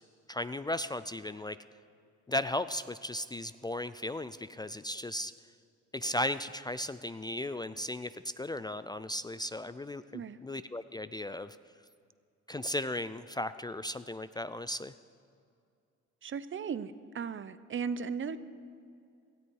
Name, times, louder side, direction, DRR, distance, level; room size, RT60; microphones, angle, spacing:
voice 1, 0.3-1.6 2.3-5.3 5.9-11.6 12.5-14.9, left 1 dB, 15° left, 13 dB, 0.3 m, -36 dB
voice 2, 16.2-18.4, right 6 dB, 40° right, 14 dB, 0.7 m, -36 dB
18.0 x 13.5 x 4.7 m, 2.4 s
cardioid pair, 90°, 30 cm